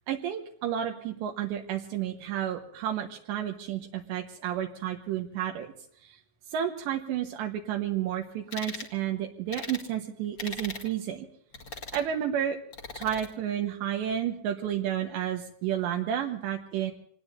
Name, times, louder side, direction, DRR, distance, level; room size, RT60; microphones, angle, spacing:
voice 1, 0.1-5.7 6.0-6.2 6.5-11.3 11.9-12.6 12.9-16.9, right 10 dB, 80° right, 2 dB, 3.4 m, -31 dB
sound 1, 8.5-8.9 9.5-9.9 10.4-10.9 11.5-12.1 12.7-13.3, left 3 dB, 45° left, 1.6 m, -39 dB
27.0 x 20.0 x 2.7 m, 0.65 s
omnidirectional pair, 5.1 m